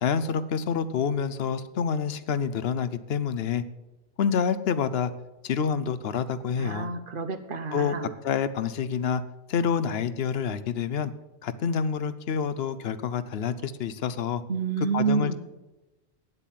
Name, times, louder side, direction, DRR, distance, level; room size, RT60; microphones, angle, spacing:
voice 1, 0.0-3.6 4.2-5.1 5.4-6.9 7.7-8.0 8.2-9.2 9.5-11.1 11.4-14.4 14.9-15.4, left 7 dB, 75° left, 15 dB, 0.9 m, -27 dB
voice 2, 6.5-8.1 14.5-15.4, right 5 dB, 55° right, 10 dB, 1.0 m, -29 dB
9.2 x 8.0 x 7.4 m, 1.0 s
omnidirectional pair, 1.1 m